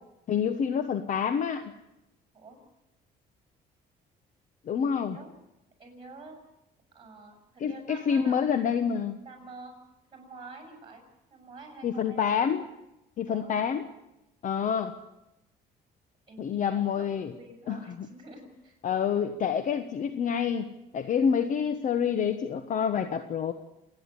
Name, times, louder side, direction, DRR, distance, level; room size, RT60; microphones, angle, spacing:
voice 1, 0.3-1.7 4.7-5.2 7.6-9.2 11.8-12.6 13.2-13.8 14.4-14.9 16.4-17.3 17.7-18.1 18.8-23.5, left 7 dB, 50° left, 10 dB, 1.1 m, -27 dB
voice 2, 4.9-5.3 5.8-6.4 6.9-8.5 9.2-9.8 10.1-11.0 11.3-12.2 13.3-13.5 16.3-18.8, right 3 dB, 30° right, 4 dB, 7.4 m, -48 dB
28.0 x 10.0 x 10.0 m, 0.93 s
cardioid pair, 110°, 17 cm